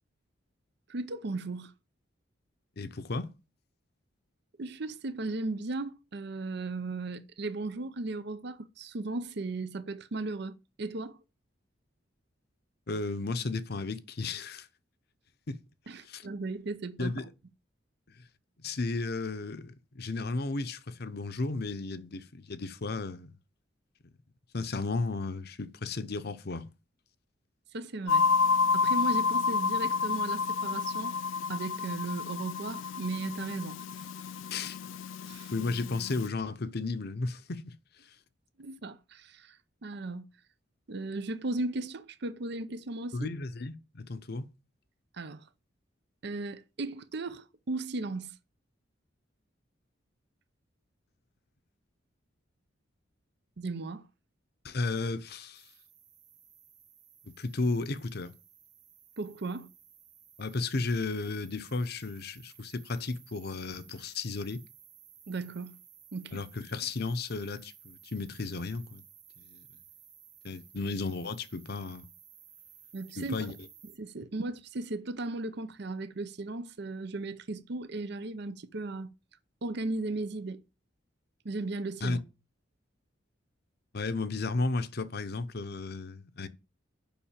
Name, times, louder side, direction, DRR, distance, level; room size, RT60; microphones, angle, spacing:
voice 1, 0.9-1.7 4.6-11.2 15.9-17.3 27.7-28.3 28.7-31.2 31.5-34.0 35.3-35.5 38.6-40.3 40.9-43.3 45.1-45.5 46.2-48.4 53.6-54.1 59.2-59.7 65.3-65.8 66.1-66.4 72.9-73.5 74.0-79.1 79.6-80.6 81.4-82.2, right 2 dB, 60° right, 0.7 m, -36 dB
voice 2, 2.8-3.3 12.9-14.7 15.5-15.6 16.1-16.2 17.0-17.3 18.6-23.3 24.5-26.7 34.5-34.8 35.5-37.7 43.1-44.4 54.6-55.6 57.4-58.3 60.4-64.6 66.3-69.0 69.4-69.6 70.4-72.1 73.2-73.5 82.0-82.2 83.9-86.5, left 3 dB, 55° left, 0.8 m, -34 dB
sound 1, 28.1-36.3, left 5 dB, 85° left, 0.4 m, -30 dB
sound 2, 55.5-74.0, right 9 dB, 40° right, 1.5 m, -57 dB
7.2 x 5.5 x 7.3 m
head